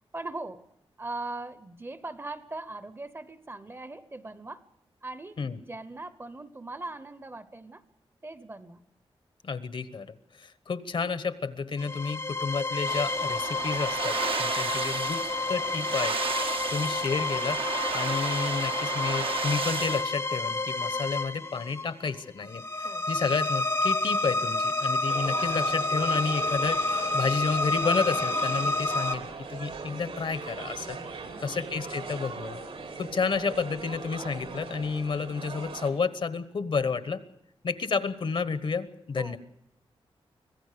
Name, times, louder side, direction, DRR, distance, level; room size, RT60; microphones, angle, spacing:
voice 1, 0.1-0.7 1.0-4.7 5.0-7.8 8.2-8.8 22.8-23.1 31.2-31.4 39.1-39.4, right 2 dB, 25° right, 15 dB, 0.9 m, -40 dB
voice 2, 9.4-17.6 17.9-31.0 31.4-32.6 33.0-37.2 37.6-39.4, left 5 dB, 60° left, 14 dB, 1.2 m, -31 dB
sound 1, 11.8-29.1, left 2 dB, 25° left, 0.7 m, -29 dB
sound 2, 12.8-20.0, right 5 dB, 65° right, 1.1 m, -33 dB
sound 3, 25.1-35.9, right 4 dB, 85° right, 4.0 m, -39 dB
25.0 x 17.0 x 6.8 m, 0.77 s
wide cardioid pair, 150°, 10 cm